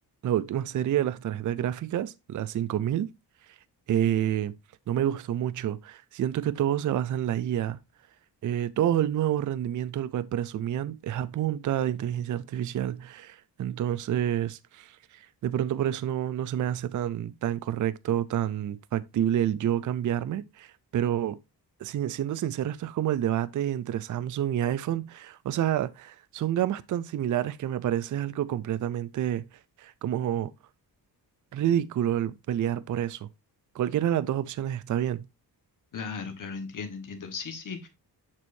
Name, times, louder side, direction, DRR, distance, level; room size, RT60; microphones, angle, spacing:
voice 1, 0.2-3.1 3.9-4.5 4.9-7.8 8.4-21.4 21.8-29.5 29.8-30.5 31.5-33.3 33.7-35.3, right 11 dB, 50° right, 0.4 m, -28 dB
voice 2, 35.9-37.9, left 5 dB, 50° left, 1.4 m, -36 dB
7.4 x 6.3 x 2.6 m
wide cardioid pair, 150°, 41 cm